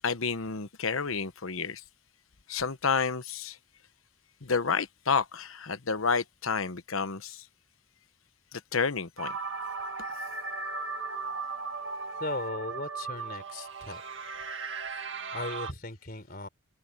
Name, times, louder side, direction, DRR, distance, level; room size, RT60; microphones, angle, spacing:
voice 1, 0.0-1.8 2.5-3.6 4.4-7.5 8.5-9.4, left 5 dB, 75° left, 1.1 m, -30 dB
sound 1, 9.2-15.7, right 4 dB, 55° right, 2.0 m, -37 dB
voice 2, 12.2-14.0 15.3-16.5, left 2 dB, 45° left, 3.9 m, -37 dB
head